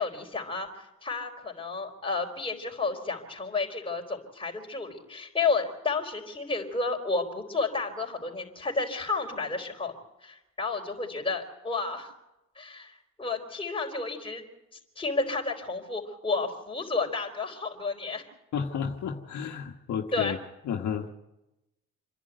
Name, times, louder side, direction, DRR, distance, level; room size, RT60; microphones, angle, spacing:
voice 1, 0.0-9.9 10.2-12.1 12.6-14.4 15.0-18.2 20.1-20.4, left 4 dB, 15° left, 1 dB, 4.4 m, -31 dB
voice 2, 18.5-20.4 20.6-21.1, left 7 dB, 70° left, 2 dB, 1.5 m, -32 dB
27.5 x 11.0 x 9.2 m, 0.96 s
cardioid pair, 90°, 30 cm